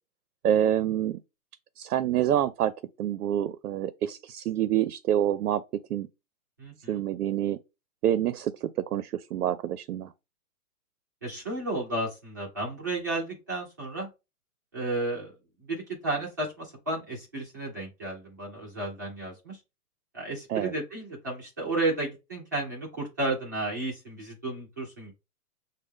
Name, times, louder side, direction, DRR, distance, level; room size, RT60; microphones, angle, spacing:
voice 1, 0.4-1.2 1.8-2.7 3.0-6.1 6.9-7.6 8.0-10.1 20.5-20.7, right 11 dB, 80° right, 0.5 m, -27 dB
voice 2, 6.6-7.0 11.2-14.1 14.7-15.3 15.7-19.6 20.1-25.1, right 2 dB, 15° right, 0.5 m, -32 dB
6.2 x 2.1 x 3.5 m
hypercardioid pair, 165°, 45 cm